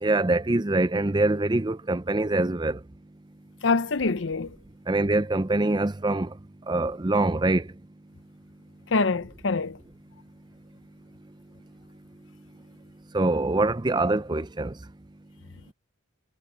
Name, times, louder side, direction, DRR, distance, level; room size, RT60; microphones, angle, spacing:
voice 1, 0.0-2.8 4.9-6.3 6.7-7.6 13.1-14.7, right 2 dB, 20° right, 0.6 m, -24 dB
voice 2, 3.6-4.5 8.9-9.8, left 3 dB, 60° left, 0.7 m, -25 dB
head